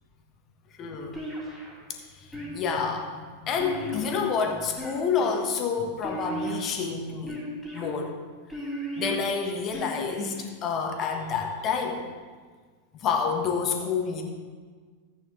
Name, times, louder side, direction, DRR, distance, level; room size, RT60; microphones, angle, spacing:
voice 1, 0.8-1.2 1.9-7.4 7.7-8.2 9.0-12.0 12.9-14.2, left 5 dB, 30° left, 3 dB, 1.5 m, -29 dB
sound 1, 1.1-1.8 2.3-2.9 3.6-4.3 4.7-5.4 6.0-6.7 7.3-7.8 8.5-9.2 9.7-10.4, right 1 dB, ahead, 3.2 m, -35 dB
14.5 x 8.8 x 3.3 m, 1.5 s
figure-of-eight pair, 90°, 0 cm